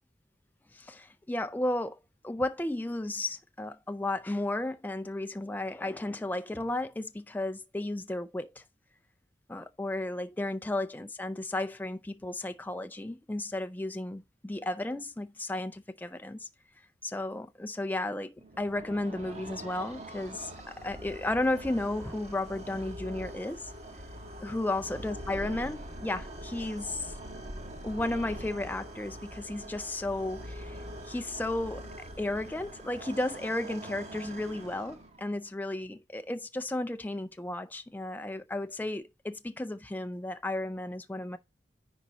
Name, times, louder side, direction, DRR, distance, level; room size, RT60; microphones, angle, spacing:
voice 1, 0.7-8.6 9.5-16.5 17.0-23.7 24.4-27.1 27.8-41.4, left 2 dB, 10° left, 0.4 m, -34 dB
sound 1, 18.4-35.4, right 1 dB, 40° right, 1.5 m, -43 dB
10.0 x 4.2 x 3.9 m
head